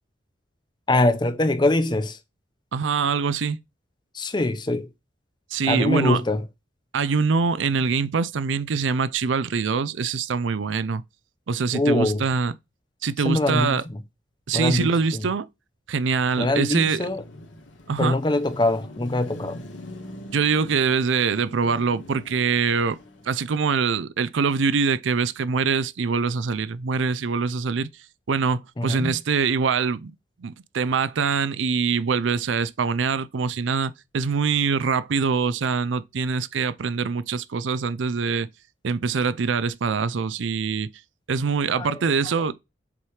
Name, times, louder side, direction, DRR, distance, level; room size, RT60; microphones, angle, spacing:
voice 1, 0.9-2.2 4.1-4.9 5.7-6.4 11.7-12.2 13.2-13.8 14.5-14.9 16.4-17.2 18.0-19.6 28.8-29.1 41.7-41.9, left 2 dB, 25° left, 0.5 m, -23 dB
voice 2, 2.7-3.6 5.5-6.2 6.9-11.0 11.5-12.6 13.0-13.8 14.5-15.5 15.9-17.1 17.9-18.2 20.3-23.0 23.3-27.9 28.3-30.1 30.4-38.5 38.8-40.9 41.3-42.5, right 5 dB, 85° right, 0.5 m, -24 dB
Car passing by / Traffic noise roadway noise / Engine, 16.3-23.6, left 1 dB, 80° left, 1.4 m, -43 dB
7.0 x 3.3 x 4.8 m
head